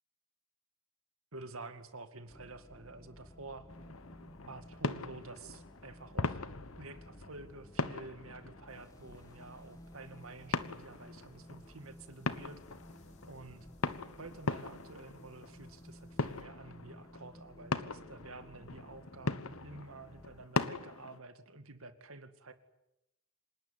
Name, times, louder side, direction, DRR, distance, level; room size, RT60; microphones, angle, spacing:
voice 1, 1.3-3.7 4.5-6.4 6.8-12.6 13.3-13.7 14.2-22.5, right 3 dB, 70° right, 9 dB, 2.2 m, -50 dB
sound 1, 2.3-20.5, equal, 15° left, 0.9 m, -56 dB
sound 2, 3.7-21.2, left 3 dB, 75° left, 1.3 m, -40 dB
sound 3, 8.7-16.4, left 1 dB, 30° left, 4.3 m, -65 dB
27.0 x 18.5 x 9.8 m, 0.90 s
head